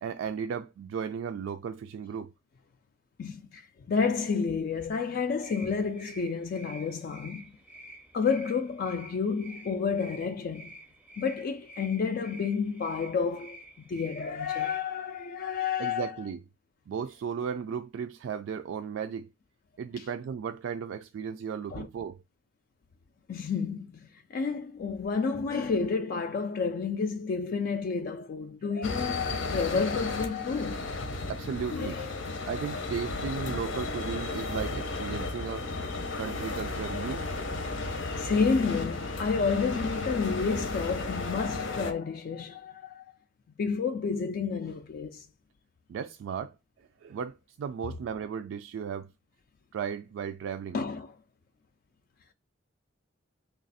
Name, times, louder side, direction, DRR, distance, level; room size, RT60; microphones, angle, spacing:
voice 1, 0.0-2.3 15.8-16.4 16.9-19.3 19.8-22.2 31.3-32.0 32.5-35.7 36.2-37.2 45.9-46.5 47.0-49.1 49.7-50.8, right 7 dB, 75° right, 0.3 m, -35 dB
voice 2, 3.2-7.5 8.1-10.7 11.2-16.2 20.0-20.1 21.7-21.9 23.3-31.0 31.7-32.3 35.1-35.2 38.2-43.1 43.6-45.2 50.7-51.1, left 5 dB, 50° left, 0.3 m, -30 dB
sound 1, 5.4-14.8, right 2 dB, 5° right, 0.5 m, -49 dB
sound 2, 28.8-41.9, left 3 dB, 90° left, 0.8 m, -34 dB
3.2 x 2.4 x 3.9 m
head